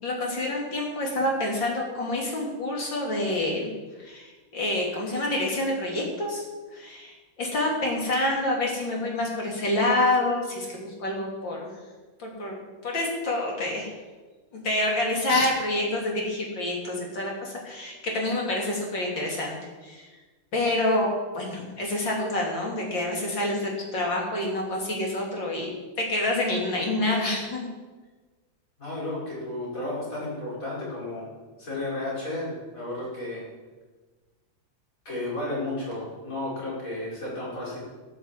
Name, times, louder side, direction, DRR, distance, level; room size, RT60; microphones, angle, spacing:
voice 1, 0.0-3.7 4.0-6.5 6.7-11.7 12.2-12.6 12.8-13.9 14.5-19.5 19.8-20.1 20.5-27.7, left 1 dB, 70° left, -2 dB, 4.0 m, -27 dB
voice 2, 28.8-31.3 31.6-33.4 35.0-37.8, left 2 dB, 40° left, -6 dB, 6.2 m, -33 dB
13.0 x 8.9 x 8.4 m, 1.3 s
omnidirectional pair, 2.1 m